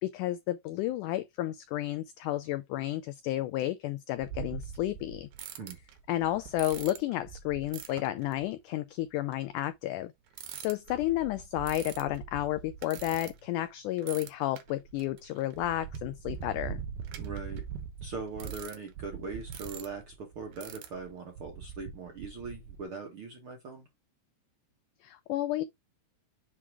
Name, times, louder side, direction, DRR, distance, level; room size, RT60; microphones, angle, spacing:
voice 1, 0.0-5.3 6.1-10.1 10.6-16.8 25.0-25.6, left 15 dB, 85° left, 1.8 m, -32 dB
sound 1, 4.2-8.4 9.3-9.5 10.3-13.7 14.0-22.8, right 8 dB, 85° right, 2.9 m, -43 dB
voice 2, 17.2-17.6 18.0-23.9, right 4 dB, 65° right, 1.3 m, -41 dB
7.6 x 2.9 x 4.7 m
omnidirectional pair, 4.1 m